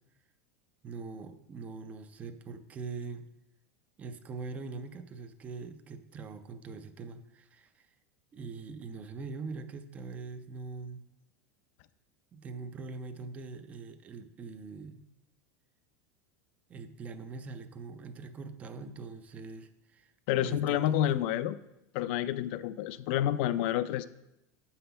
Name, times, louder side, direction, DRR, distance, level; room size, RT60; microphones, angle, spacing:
voice 1, 0.8-3.2 4.0-7.9 8.3-11.0 12.3-15.1 16.7-21.2 23.5-23.6, right 4 dB, 15° right, 9 dB, 0.4 m, -43 dB
voice 2, 20.3-21.6 21.9-24.1, left 12 dB, 45° left, 14 dB, 0.4 m, -29 dB
6.6 x 5.6 x 6.9 m, 0.90 s
supercardioid pair, 175°, 9 cm